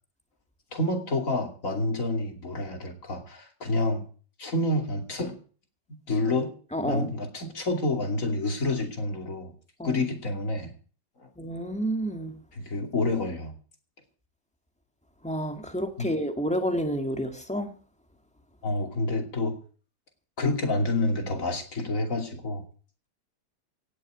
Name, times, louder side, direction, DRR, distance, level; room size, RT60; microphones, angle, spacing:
voice 1, 0.7-4.0 4.4-5.4 5.9-6.5 6.8-9.5 9.8-10.7 12.5-13.5 16.0-16.1 18.6-19.6 20.4-22.6, left 2 dB, 45° left, 3.2 m, -28 dB
voice 2, 6.7-7.0 9.8-9.9 11.4-12.3 15.2-17.7, equal, 5° left, 1.8 m, -29 dB
18.0 x 6.6 x 9.1 m
omnidirectional pair, 2.0 m